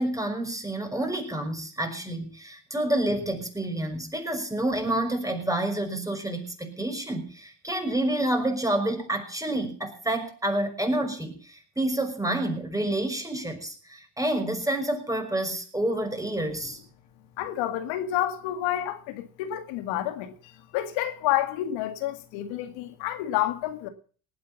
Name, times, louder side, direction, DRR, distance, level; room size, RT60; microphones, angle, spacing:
voice 1, 0.0-16.8, right 1 dB, 5° right, 5.9 m, -28 dB
voice 2, 17.4-20.3 20.7-23.9, left 12 dB, 80° left, 2.1 m, -29 dB
19.0 x 8.7 x 7.1 m
supercardioid pair, 75°, 45 cm